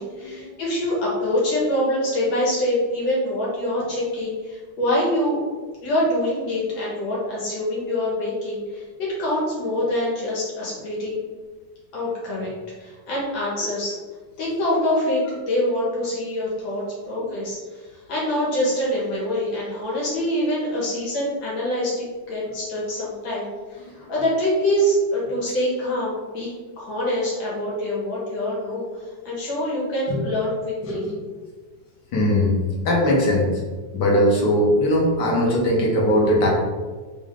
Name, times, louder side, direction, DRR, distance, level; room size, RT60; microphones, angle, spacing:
voice 1, 0.0-5.4 5.8-11.2 11.9-12.5 12.8-14.0 14.4-26.5 26.8-28.9 29.2-31.1, left 1 dB, 90° left, -6 dB, 2.3 m, -25 dB
voice 2, 32.1-33.5 33.9-36.5, left 1 dB, 65° left, -2 dB, 1.6 m, -20 dB
3.9 x 3.7 x 3.6 m, 1.4 s
omnidirectional pair, 2.0 m